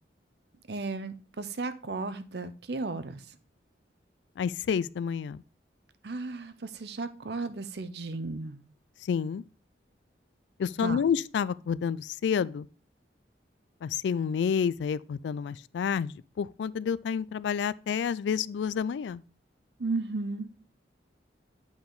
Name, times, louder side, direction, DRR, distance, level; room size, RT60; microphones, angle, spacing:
voice 1, 0.7-3.2 6.0-8.6 10.8-11.0 19.8-20.5, right 3 dB, 65° right, 0.7 m, -34 dB
voice 2, 4.4-5.4 9.0-9.4 10.6-12.7 13.8-19.2, left 7 dB, 80° left, 0.3 m, -29 dB
8.5 x 4.8 x 3.9 m
head